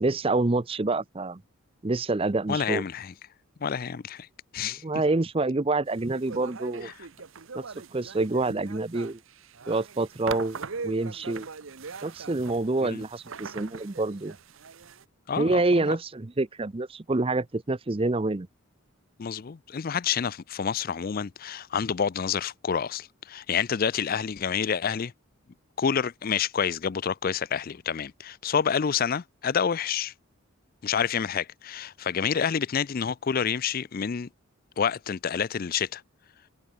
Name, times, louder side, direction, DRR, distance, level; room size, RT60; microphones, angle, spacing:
voice 1, 0.0-1.4 1.8-2.8 4.6-6.9 7.5-7.6 7.9-9.2 9.7-10.6 10.8-11.5 12.0-14.4 15.4-18.5, right 2 dB, 25° right, 0.6 m, -27 dB
voice 2, 2.5-3.1 3.6-4.3 4.5-4.8 6.8-6.9 12.8-13.0 15.3-15.9 19.2-25.1 25.8-30.1 30.8-34.3 34.8-36.0, left 7 dB, 40° left, 0.4 m, -28 dB
sound 1, 6.0-15.0, right 5 dB, 65° right, 0.9 m, -41 dB
head